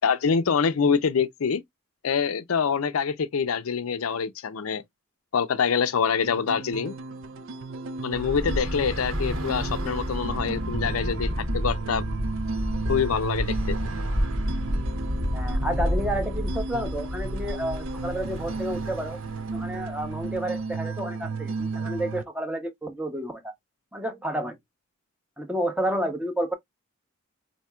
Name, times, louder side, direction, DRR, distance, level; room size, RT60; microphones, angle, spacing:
voice 1, 0.0-1.6 2.0-4.8 5.3-6.9 8.0-12.0 12.9-13.8, left 6 dB, 90° left, 0.5 m, -25 dB
sound 1, 6.2-22.2, right 4 dB, 70° right, 0.4 m, -34 dB
Bus / Traffic noise roadway noise, 8.1-20.6, equal, 85° right, 1.6 m, -30 dB
voice 2, 15.3-19.2 19.5-23.5 23.9-24.6 25.4-26.5, right 1 dB, 5° right, 0.6 m, -30 dB
4.3 x 2.8 x 2.2 m
head